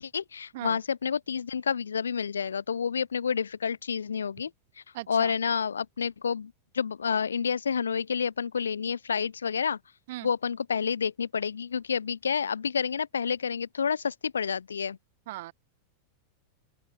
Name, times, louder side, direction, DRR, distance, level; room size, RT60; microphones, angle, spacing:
voice 1, 0.0-4.5 5.1-9.8 10.2-15.0, left 6 dB, 70° left, 1.1 m, -29 dB
voice 2, 4.9-5.3 10.1-10.3 15.3-15.5, right 17 dB, 55° right, 1.4 m, -38 dB
open air
figure-of-eight pair, 90°, 0 cm